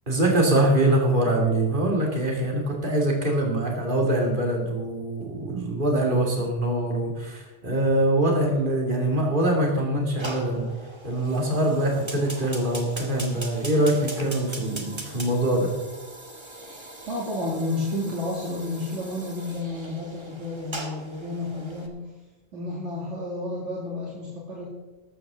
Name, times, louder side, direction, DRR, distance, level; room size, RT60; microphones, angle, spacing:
voice 1, 0.1-10.7 11.0-15.7, right 1 dB, 45° right, 0 dB, 2.9 m, -23 dB
Fire, 10.2-21.9, right 1 dB, 25° right, 1.6 m, -40 dB
voice 2, 16.6-22.1 22.5-24.6, left 2 dB, 80° right, -5 dB, 2.9 m, -31 dB
14.0 x 12.5 x 3.8 m, 1.2 s
omnidirectional pair, 1.2 m